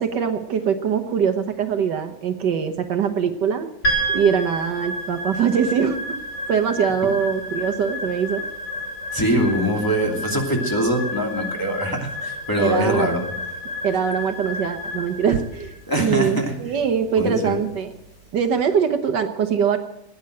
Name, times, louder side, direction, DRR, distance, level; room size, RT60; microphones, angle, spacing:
voice 1, 0.0-3.7 4.1-6.2 6.5-8.4 12.6-13.1 13.8-17.9 18.3-19.8, right 7 dB, 70° right, 7 dB, 1.6 m, -22 dB
sound 1, 3.8-18.2, equal, 65° left, 7.4 m, -31 dB
voice 2, 9.1-13.3 15.9-16.6 17.2-17.6, equal, 10° left, -1 dB, 2.6 m, -23 dB
18.5 x 9.5 x 7.7 m, 0.82 s
omnidirectional pair, 2.0 m